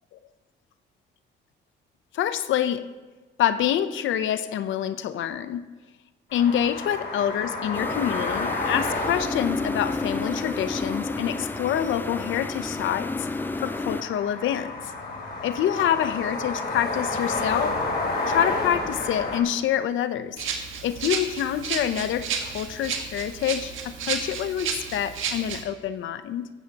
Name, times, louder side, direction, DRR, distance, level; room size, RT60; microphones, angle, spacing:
voice 1, 2.1-2.9 3.4-5.7 6.3-13.3 13.6-14.7 15.4-17.8 18.3-20.5 20.8-26.5, left 10 dB, 75° left, 12 dB, 0.7 m, -26 dB
sound 1, 6.3-19.4, left 2 dB, 55° left, 3.4 m, -31 dB
sound 2, 7.7-14.0, left 3 dB, 10° left, 0.4 m, -31 dB
Rattle (instrument), 20.4-25.6, right 6 dB, 85° right, 1.5 m, -32 dB
15.5 x 13.0 x 2.9 m, 1.3 s
cardioid pair, 90°, 20 cm